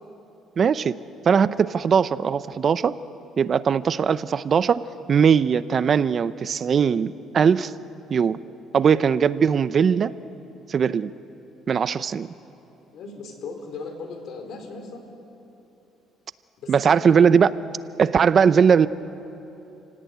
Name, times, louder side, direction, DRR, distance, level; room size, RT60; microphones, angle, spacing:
voice 1, 0.6-1.0 1.3-2.9 3.4-4.8 5.1-7.7 8.1-8.4 8.7-10.1 10.7-11.1 11.7-12.3 16.7-17.5 18.0-18.9, right 7 dB, 40° right, 15 dB, 0.6 m, -19 dB
voice 2, 12.9-15.0 16.6-17.2, left 4 dB, 65° left, 5 dB, 4.4 m, -37 dB
29.5 x 17.5 x 9.3 m, 3.0 s
cardioid pair, 115°, 0 cm